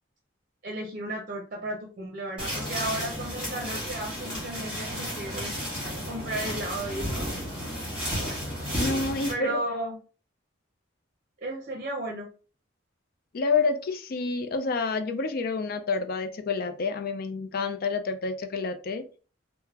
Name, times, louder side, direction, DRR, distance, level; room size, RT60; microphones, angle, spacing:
voice 1, 0.6-5.5 6.1-7.4 8.3-8.4 9.3-10.0 11.4-12.3, right 1 dB, 45° right, 0.6 m, -34 dB
sound 1, 2.4-9.3, equal, 5° right, 1.5 m, -33 dB
voice 2, 8.8-9.6 13.3-19.0, left 4 dB, 50° left, 0.4 m, -28 dB
3.8 x 2.0 x 2.8 m
head